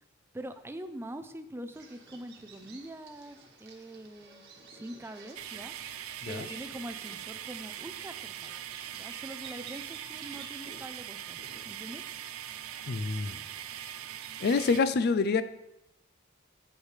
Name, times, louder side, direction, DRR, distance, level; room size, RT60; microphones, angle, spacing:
voice 1, 0.3-4.4 4.7-5.7 6.3-8.5 8.9-11.4 11.6-12.0, right 1 dB, 10° right, 9 dB, 0.5 m, -43 dB
Bird vocalization bird call bird song, 1.7-14.8, right 4 dB, 55° right, 1.4 m, -52 dB
sound 1, 5.3-14.8, right 11 dB, 90° right, 0.5 m, -42 dB
voice 2, 12.9-13.4 14.4-15.4, left 4 dB, 50° left, 13 dB, 0.4 m, -27 dB
8.2 x 8.1 x 3.2 m, 0.88 s
head